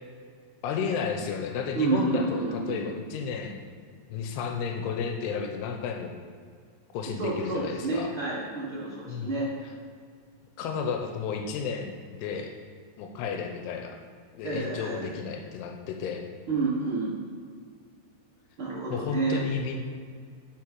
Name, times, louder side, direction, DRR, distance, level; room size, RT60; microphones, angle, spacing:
voice 1, 0.6-3.6 4.1-6.1 6.9-8.1 9.1-9.4 10.6-12.5 13.0-14.0 14.4-16.3 18.9-19.8, left 6 dB, 90° left, 3 dB, 2.7 m, -32 dB
voice 2, 1.7-2.8 7.2-9.7 14.4-15.1 16.5-17.1 18.6-19.4, right 3 dB, 70° right, -7 dB, 1.2 m, -29 dB
9.5 x 5.4 x 4.5 m, 2.1 s
omnidirectional pair, 4.7 m